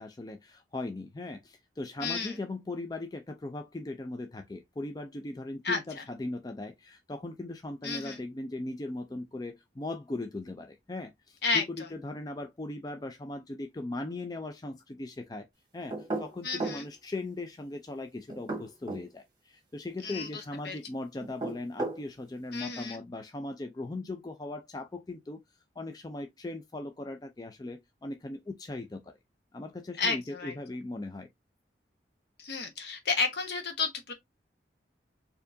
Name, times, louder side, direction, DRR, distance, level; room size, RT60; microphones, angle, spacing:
voice 1, 0.0-11.6 11.9-15.5 15.7-25.4 25.8-29.2 29.5-31.3, left 2 dB, 20° left, 0.4 m, -39 dB
voice 2, 2.0-2.3 5.6-5.8 7.8-8.2 11.4-11.6 16.4-16.9 20.0-20.8 22.5-23.0 30.0-30.5 32.4-34.1, left 4 dB, 60° left, 1.0 m, -31 dB
sound 1, 15.9-16.8 18.3-19.1 21.2-22.0, right 2 dB, 20° right, 1.3 m, -34 dB
4.4 x 2.8 x 2.6 m
head